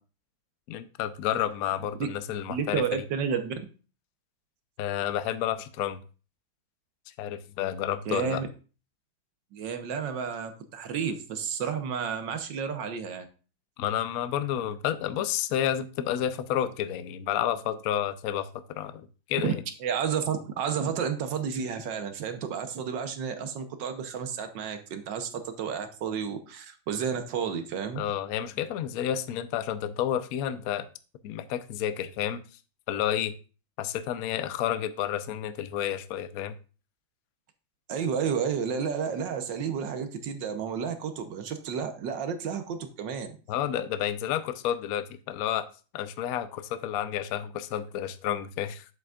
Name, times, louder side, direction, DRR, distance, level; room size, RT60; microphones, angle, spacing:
voice 1, 0.7-3.0 4.8-6.0 7.2-8.4 13.8-19.6 27.9-30.9 31.2-32.4 32.9-33.3 33.8-36.5 43.5-45.7 45.9-48.8, left 10 dB, 70° left, 12 dB, 0.8 m, -30 dB
voice 2, 2.5-3.5 8.1-8.5 9.5-13.3 19.4-19.5 19.8-28.0 37.9-43.4, right 7 dB, 70° right, 8 dB, 1.5 m, -31 dB
7.9 x 7.6 x 2.4 m, 0.35 s
omnidirectional pair, 2.1 m